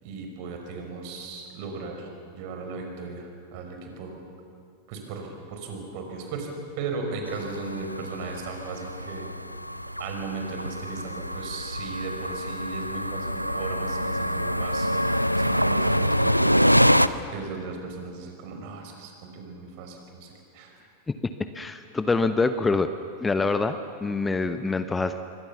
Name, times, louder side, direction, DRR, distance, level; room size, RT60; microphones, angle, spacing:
voice 1, 0.0-4.2 4.9-9.3 10.0-16.9 17.3-20.7, right 4 dB, 45° right, 3 dB, 5.4 m, -36 dB
sound 1, 7.3-17.1, equal, 90° left, 0.6 m, -25 dB
voice 2, 21.5-22.9 23.2-25.2, left 3 dB, 10° left, 10 dB, 0.9 m, -25 dB
27.5 x 23.5 x 7.1 m, 2.3 s
figure-of-eight pair, 90°, 0 cm